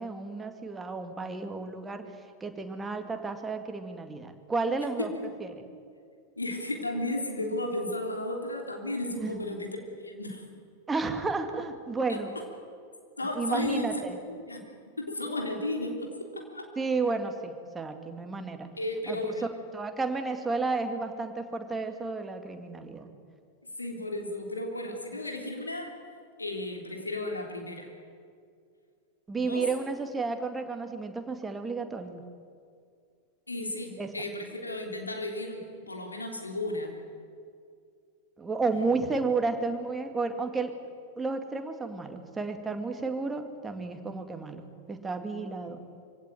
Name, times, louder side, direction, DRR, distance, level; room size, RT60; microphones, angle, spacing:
voice 1, 0.0-2.0 2.4-5.1 5.4-5.5 9.2-9.4 10.9-12.3 13.4-14.2 16.8-18.7 19.1-19.2 19.7-23.1 29.3-32.2 34.0-34.1 38.4-40.7 41.2-45.9, right 4 dB, 15° right, 6 dB, 2.2 m, -32 dB
voice 2, 5.0-5.3 6.4-9.7 10.0-10.4 12.1-12.2 13.2-14.0 14.3-14.6 15.0-16.7 18.8-19.4 23.8-25.9 26.4-27.9 29.3-29.7 33.5-36.9 38.7-38.8, left 1 dB, 80° left, 2 dB, 3.3 m, -34 dB
24.5 x 16.5 x 9.1 m, 2.3 s
figure-of-eight pair, 90°, 0 cm